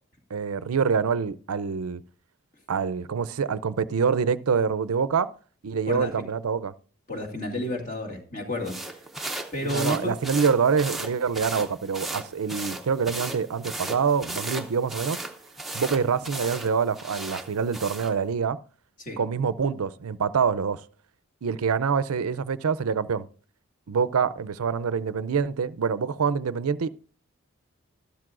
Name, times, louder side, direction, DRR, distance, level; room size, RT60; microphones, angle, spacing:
voice 1, 0.3-2.0 2.7-5.3 5.6-6.7 9.6-15.2 15.7-18.6 19.2-20.8 21.4-23.3 23.9-26.9, right 6 dB, 90° right, 0.5 m, -25 dB
voice 2, 7.1-9.0 9.5-10.1 19.0-19.2, left 1 dB, 35° left, 2.2 m, -31 dB
sound 1, 8.6-18.2, right 2 dB, ahead, 0.7 m, -36 dB
13.0 x 12.5 x 2.5 m
head